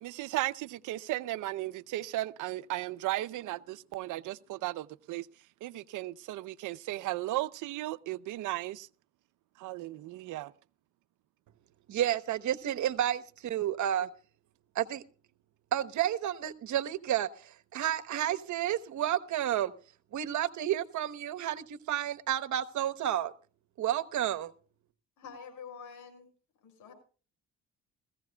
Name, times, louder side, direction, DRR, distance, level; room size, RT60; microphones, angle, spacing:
voice 1, 0.0-5.3 5.6-8.9 9.6-10.5, right 17 dB, 90° right, 0.7 m, -35 dB
voice 2, 11.9-14.1 14.7-15.0 15.7-17.3 17.7-19.7 20.1-23.3 23.8-24.5, right 11 dB, 70° right, 1.1 m, -31 dB
voice 3, 25.2-26.3 26.6-26.9, left 6 dB, 85° left, 6.0 m, -47 dB
21.0 x 15.5 x 2.3 m
cardioid pair, 90°, 30 cm